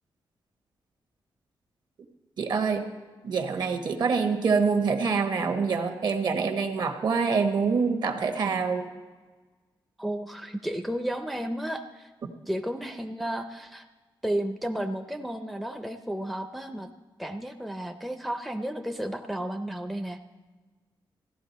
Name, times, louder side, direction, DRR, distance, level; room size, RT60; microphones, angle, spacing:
voice 1, 2.4-2.8 3.2-8.8, right 5 dB, 55° right, 6 dB, 1.1 m, -25 dB
voice 2, 10.0-12.1 12.5-13.8 14.2-16.9 17.2-20.2, right 1 dB, ahead, 6 dB, 0.4 m, -32 dB
15.5 x 11.5 x 4.1 m, 1.3 s
wide cardioid pair, 160°, 8 cm